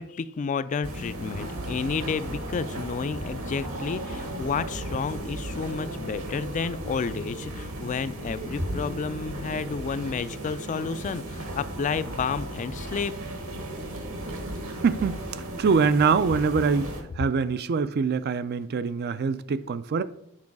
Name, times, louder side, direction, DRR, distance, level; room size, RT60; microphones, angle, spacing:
voice 1, 0.0-13.1, left 5 dB, 35° left, 0.3 m, -31 dB
sound 1, 0.8-17.0, right 1 dB, 70° right, 1.4 m, -35 dB
voice 2, 14.8-15.2 15.6-20.0, right 5 dB, 50° right, 0.4 m, -24 dB
7.5 x 4.6 x 4.7 m
head